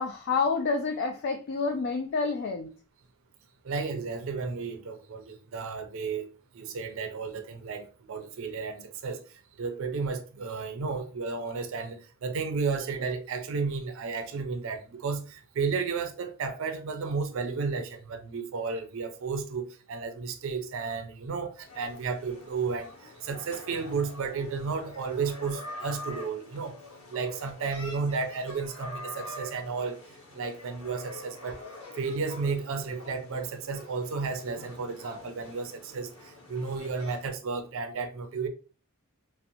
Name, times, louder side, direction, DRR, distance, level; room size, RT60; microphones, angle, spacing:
voice 1, 0.0-2.7, left 4 dB, 50° left, 0.3 m, -28 dB
voice 2, 3.6-6.3 6.5-26.8 27.1-30.0 30.3-31.6 32.0-38.5, right 4 dB, 65° right, 0.4 m, -33 dB
sound 1, 21.6-37.3, left 2 dB, 85° left, 0.9 m, -45 dB
2.6 x 2.0 x 2.7 m
head